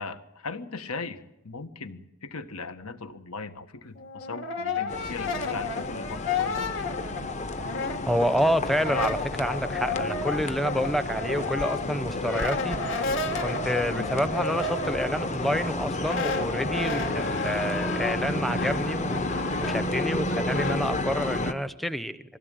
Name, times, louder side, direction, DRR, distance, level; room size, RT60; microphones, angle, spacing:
voice 1, 0.0-6.6 13.9-14.2 17.9-18.3, left 4 dB, 80° left, 10 dB, 1.5 m, -39 dB
Brass instrument, 4.0-8.4 8.7-20.8, left 3 dB, 55° left, 2.4 m, -32 dB
sound 1, 4.9-21.5, left 2 dB, 30° left, 0.9 m, -31 dB
voice 2, 8.1-12.8 13.4-22.4, equal, ahead, 12 dB, 0.7 m, -28 dB
21.5 x 17.0 x 9.2 m, 0.88 s
head